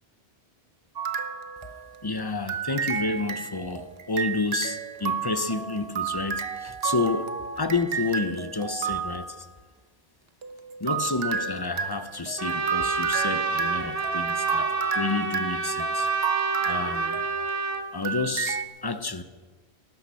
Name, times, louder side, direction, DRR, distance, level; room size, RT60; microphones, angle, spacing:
sound 1, 1.0-2.1 2.5-9.4 10.4-17.6 18.0-18.6, right 6 dB, 65° right, 1.1 m, -32 dB
voice 1, 2.0-9.5 10.8-16.1 16.6-17.2 17.9-19.2, left 3 dB, 25° left, 11 dB, 0.7 m, -30 dB
Trumpet, 12.4-17.8, right 4 dB, 35° right, 1.3 m, -28 dB
17.5 x 10.5 x 6.3 m, 1.4 s
omnidirectional pair, 1.1 m